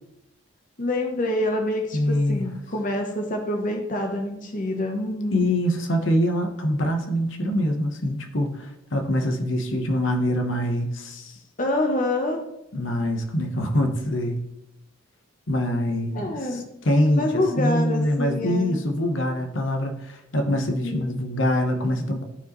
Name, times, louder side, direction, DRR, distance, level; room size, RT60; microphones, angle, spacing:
voice 1, 0.8-5.5 11.6-12.4 16.1-16.6 17.2-18.8 20.5-21.2, left 1 dB, 40° left, 2 dB, 0.9 m, -26 dB
voice 2, 1.9-2.5 5.3-11.4 12.7-14.4 15.5-22.2, left 1 dB, 70° left, 4 dB, 1.1 m, -24 dB
13.5 x 4.8 x 3.1 m, 0.85 s
head